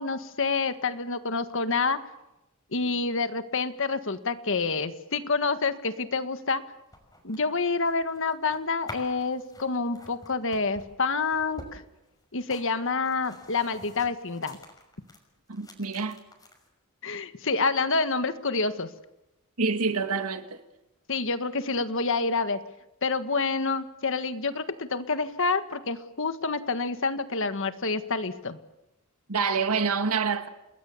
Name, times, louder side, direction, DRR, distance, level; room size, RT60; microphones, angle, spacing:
voice 1, 0.0-2.0 2.7-6.6 7.2-11.8 12.3-14.6 17.0-18.9 21.1-22.6 23.0-28.6, left 4 dB, 60° left, 1.7 m, -28 dB
sound 1, 6.7-15.2 15.5-16.7, left 1 dB, 15° left, 5.9 m, -48 dB
voice 2, 15.5-16.2 19.6-20.6 29.3-30.5, right 5 dB, 85° right, 2.0 m, -27 dB
29.5 x 20.5 x 7.3 m
head